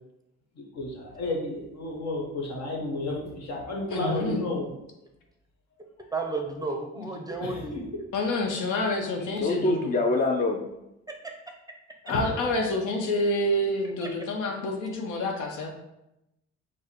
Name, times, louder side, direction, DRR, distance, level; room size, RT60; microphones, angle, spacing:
voice 1, 0.6-4.7 7.4-7.9 12.1-12.2, left 2 dB, 60° left, -1 dB, 1.3 m, -32 dB
voice 2, 3.9-4.5 7.0-7.1 8.1-9.9 12.0-15.7, left 1 dB, 80° left, 2 dB, 0.9 m, -28 dB
voice 3, 6.1-7.7 14.0-14.1, right 3 dB, 10° right, 2 dB, 0.6 m, -32 dB
voice 4, 9.4-10.7, left 2 dB, 30° left, 3 dB, 0.4 m, -25 dB
4.7 x 2.2 x 4.4 m, 0.89 s
cardioid pair, 90°, 30 cm